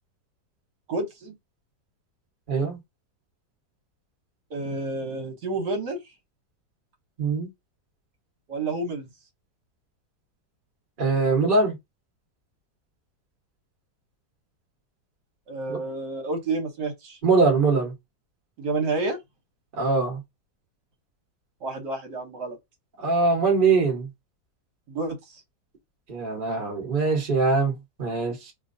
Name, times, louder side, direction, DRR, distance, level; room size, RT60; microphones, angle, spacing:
voice 1, 0.9-1.3 4.5-6.0 8.5-9.1 15.5-17.2 18.6-19.2 21.6-22.6 24.9-25.4, right 3 dB, 70° right, 1.6 m, -30 dB
voice 2, 2.5-2.8 7.2-7.5 11.0-11.7 15.7-15.8 17.2-17.9 19.8-20.2 23.0-24.1 26.1-28.5, right 4 dB, 30° right, 1.3 m, -22 dB
4.5 x 2.8 x 2.6 m
omnidirectional pair, 1.8 m